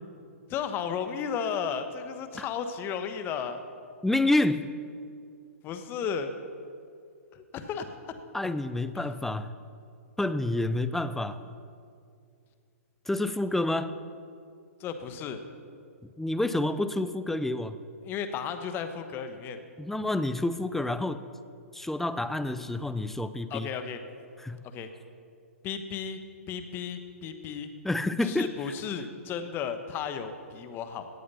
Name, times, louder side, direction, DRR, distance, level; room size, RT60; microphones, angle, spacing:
voice 1, 0.5-3.6 5.6-6.3 7.3-7.9 8.9-9.1 14.8-15.4 18.0-19.6 23.5-24.0 24.7-24.9 25.6-26.2 26.5-27.7 28.2-31.1, left 7 dB, 25° left, 8 dB, 1.1 m, -34 dB
voice 2, 4.0-4.7 8.3-9.5 10.2-11.4 13.1-13.9 16.2-17.8 19.8-21.2 21.7-23.7 24.4-24.6 27.8-28.7, left 2 dB, 5° left, 12 dB, 0.4 m, -28 dB
17.5 x 8.4 x 5.5 m, 2.3 s
hypercardioid pair, 120°, 8 cm